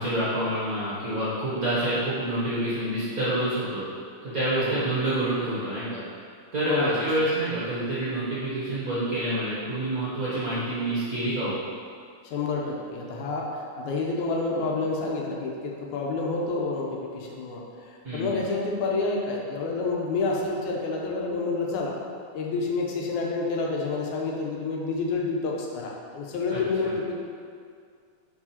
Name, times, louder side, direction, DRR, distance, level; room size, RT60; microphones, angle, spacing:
voice 1, 0.0-3.8 4.2-6.0 6.5-11.6 18.0-18.4 26.5-26.9, right 1 dB, 65° right, -11 dB, 0.8 m, -27 dB
voice 2, 4.5-4.9 6.6-7.1 12.2-21.9 22.3-27.2, left 3 dB, 90° left, -2 dB, 2.2 m, -29 dB
4.8 x 4.7 x 4.2 m, 2.2 s
omnidirectional pair, 3.4 m